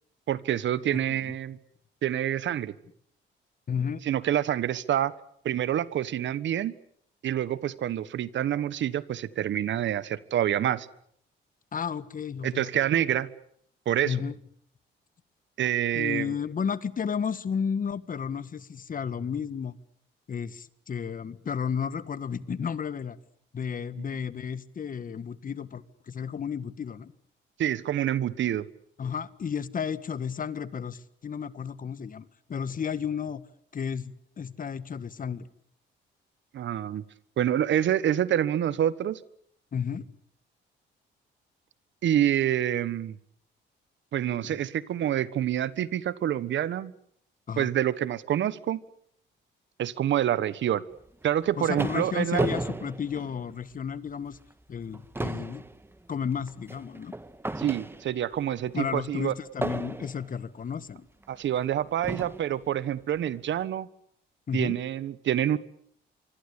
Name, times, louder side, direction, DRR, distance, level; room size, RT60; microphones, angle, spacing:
voice 1, 0.3-1.6 2.0-2.7 4.0-5.1 5.4-6.8 7.2-10.9 12.4-13.3 13.8-14.2 15.6-16.3 27.6-28.7 36.5-37.0 37.4-39.2 42.0-43.2 44.1-46.9 47.6-48.8 49.8-50.8 51.2-52.5 57.6-59.3 61.3-63.9 64.5-65.6, right 11 dB, 70° right, 17 dB, 1.4 m, -27 dB
voice 2, 0.9-1.4 3.7-4.0 11.7-12.8 14.0-14.3 15.9-19.7 20.3-23.2 23.5-27.1 29.0-33.4 33.7-35.5 39.7-40.0 44.4-44.6 47.5-47.7 51.6-54.4 54.7-55.6 56.1-57.1 58.7-61.1 64.5-64.7, left 7 dB, 45° left, 15 dB, 1.6 m, -33 dB
sound 1, 51.2-53.9 54.3-54.5 54.8-58.4 59.6-60.4 61.2-61.3 62.0-62.6, right 2 dB, 10° right, 1.6 m, -34 dB
26.0 x 25.0 x 8.4 m, 0.66 s
cardioid pair, 90°, 20 cm